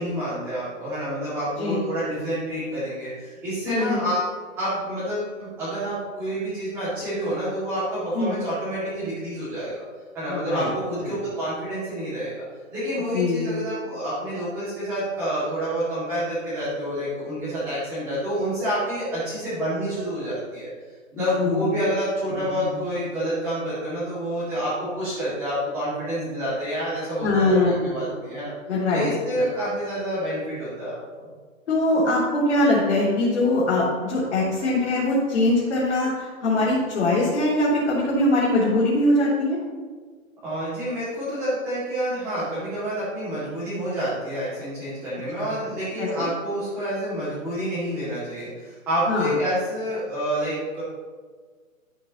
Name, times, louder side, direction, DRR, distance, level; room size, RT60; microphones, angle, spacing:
voice 1, 0.0-9.8 10.1-12.4 12.7-20.7 21.1-28.5 28.9-31.0 40.4-50.8, equal, 5° right, -14 dB, 2.4 m, -28 dB
voice 2, 3.7-4.1 8.1-8.3 10.3-10.7 11.0-11.1 13.1-13.5 21.1-21.7 22.6-22.7 27.2-28.1 28.7-29.1 29.4-29.5 31.7-39.6 45.4-45.5 46.0-46.3 49.1-49.3, left 2 dB, 55° left, -8 dB, 3.4 m, -22 dB
13.5 x 8.5 x 3.1 m, 1.5 s
hypercardioid pair, 170°, 41 cm